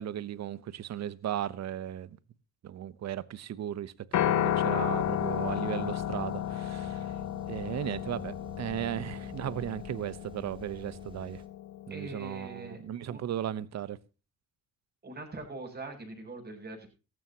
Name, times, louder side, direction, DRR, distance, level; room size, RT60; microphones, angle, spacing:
voice 1, 0.0-2.2 2.6-3.9 4.3-7.1 7.5-11.4 11.9-14.0, right 11 dB, 60° right, 1.0 m, -36 dB
Piano, 4.1-12.4, left 11 dB, 70° left, 1.5 m, -33 dB
sound 1, 4.1-11.5, right 2 dB, 15° right, 3.3 m, -50 dB
voice 2, 11.9-12.8 13.1-13.2 15.0-16.9, right 2 dB, 30° right, 7.8 m, -42 dB
17.5 x 14.5 x 2.9 m
cardioid pair, 90°, 30 cm